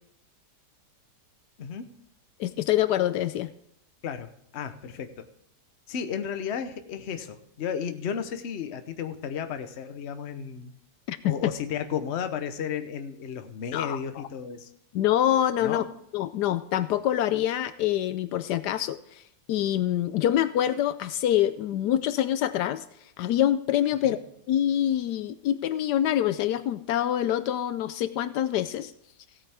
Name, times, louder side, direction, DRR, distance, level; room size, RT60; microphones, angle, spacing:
voice 1, 2.4-3.5 11.1-11.5 13.7-14.0 14.9-15.8 16.1-19.2 19.5-22.8 23.2-24.2 24.5-28.9, left 11 dB, 80° left, 13 dB, 1.1 m, -25 dB
voice 2, 4.0-5.3 5.9-10.7 11.2-14.7 15.6-15.8 24.0-24.2, left 7 dB, 50° left, 9 dB, 1.0 m, -33 dB
16.5 x 8.9 x 3.5 m, 0.75 s
omnidirectional pair, 1.8 m